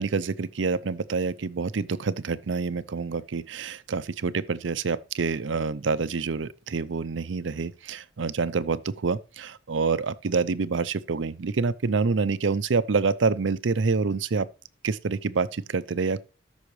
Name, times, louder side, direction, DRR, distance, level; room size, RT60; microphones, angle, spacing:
voice 1, 0.0-14.5 14.8-16.2, right 4 dB, 85° right, 0.6 m, -27 dB
13.0 x 6.3 x 3.2 m
head